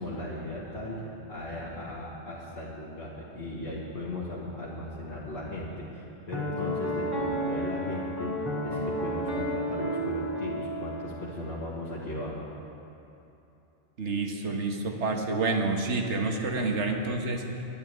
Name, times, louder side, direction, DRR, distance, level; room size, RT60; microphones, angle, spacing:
voice 1, 0.0-8.3 8.6-12.4, left 1 dB, 70° left, -7 dB, 2.0 m, -37 dB
Piano, 6.3-11.6, equal, 20° right, 2.5 m, -32 dB
voice 2, 14.0-17.4, right 3 dB, 85° right, 3 dB, 1.6 m, -28 dB
11.0 x 10.5 x 9.5 m, 2.8 s
omnidirectional pair, 1.1 m